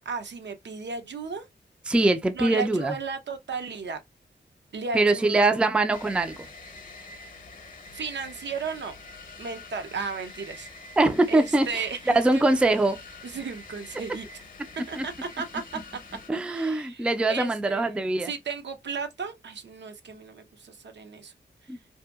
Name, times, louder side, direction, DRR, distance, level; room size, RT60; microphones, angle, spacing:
voice 1, 0.0-1.4 2.3-4.0 4.7-5.7 7.9-8.9 9.4-10.9 11.3-12.4 13.2-14.4 14.9-15.6 16.3-21.3 21.6-21.8, right 5 dB, 75° right, 0.6 m, -35 dB
voice 2, 1.9-2.9 4.9-6.4 11.0-13.0 15.0-15.1 16.3-18.3 21.7-21.8, right 2 dB, 5° right, 0.3 m, -23 dB
sound 1, 5.9-16.3, left 3 dB, 50° left, 0.7 m, -46 dB
2.7 x 2.6 x 2.3 m
wide cardioid pair, 115°, 18 cm